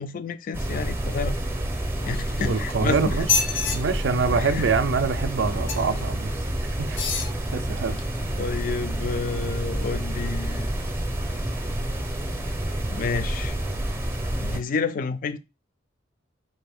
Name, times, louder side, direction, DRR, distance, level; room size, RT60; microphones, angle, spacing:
voice 1, 0.0-1.3 2.0-3.2 4.3-4.7 8.4-10.7 12.9-13.6 14.4-15.4, left 4 dB, 45° left, 0.3 m, -30 dB
sound 1, 0.5-14.6, right 1 dB, 15° right, 0.6 m, -29 dB
sound 2, 2.0-2.7 3.2-3.8 5.7-6.0 6.9-7.3 8.0-8.1, left 5 dB, 85° left, 0.7 m, -27 dB
voice 2, 2.4-3.3 3.7-6.3 6.6-7.0 7.5-8.3, right 4 dB, 65° right, 0.4 m, -25 dB
3.9 x 2.5 x 3.4 m
head